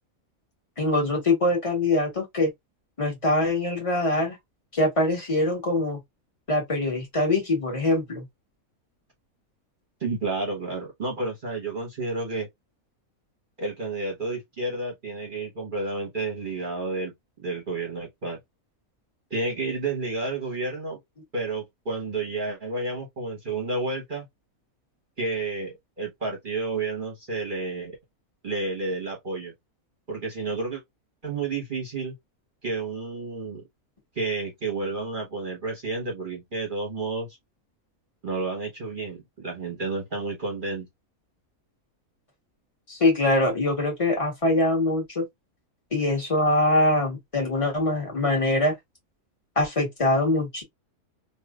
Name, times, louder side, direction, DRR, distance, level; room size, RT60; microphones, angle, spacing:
voice 1, 0.8-2.5 3.0-4.4 4.7-6.0 6.5-8.2 42.9-45.2 45.9-48.7 49.5-50.6, left 2 dB, 25° left, 1.5 m, -23 dB
voice 2, 10.0-12.5 13.6-17.1 17.4-18.4 19.3-21.0 21.3-24.3 25.2-28.0 28.4-29.5 30.1-30.8 31.2-32.1 32.6-33.6 34.1-37.3 38.2-40.9, right 3 dB, 40° right, 0.9 m, -30 dB
3.2 x 2.6 x 2.2 m
omnidirectional pair, 1.5 m